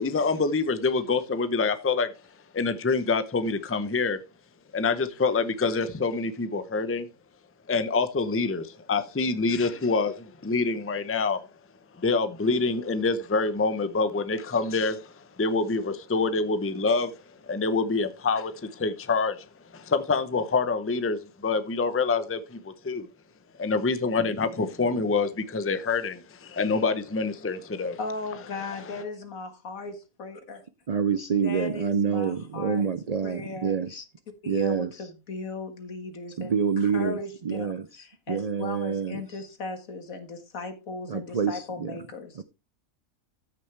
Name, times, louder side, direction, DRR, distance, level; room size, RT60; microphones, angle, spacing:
voice 1, 0.0-2.1 2.5-4.2 4.7-7.1 7.7-11.4 12.0-15.1 15.4-17.1 17.5-19.4 19.7-23.1 23.6-28.0, left 4 dB, 15° left, 0.6 m, -26 dB
voice 2, 28.0-30.6 31.4-32.9 33.2-33.8 34.4-42.4, left 3 dB, 75° left, 2.0 m, -37 dB
voice 3, 30.9-34.0 34.5-34.9 36.4-39.2 41.1-42.0 42.4-42.5, right 6 dB, 65° right, 0.3 m, -27 dB
14.0 x 6.5 x 3.3 m
omnidirectional pair, 1.4 m